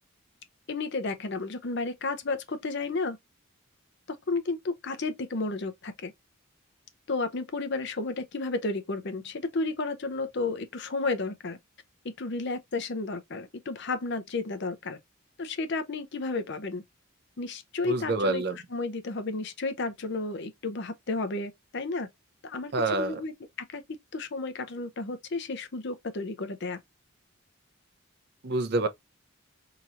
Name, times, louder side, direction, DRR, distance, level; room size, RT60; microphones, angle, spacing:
voice 1, 0.7-3.2 4.3-6.1 7.1-11.6 12.0-15.0 15.4-16.8 17.4-22.1 22.4-23.3 23.7-23.8 24.1-26.8, left 3 dB, 55° left, 0.6 m, -32 dB
voice 2, 17.9-18.6 22.7-23.2 28.4-28.9, right 2 dB, 50° right, 0.5 m, -27 dB
4.3 x 3.0 x 2.4 m
head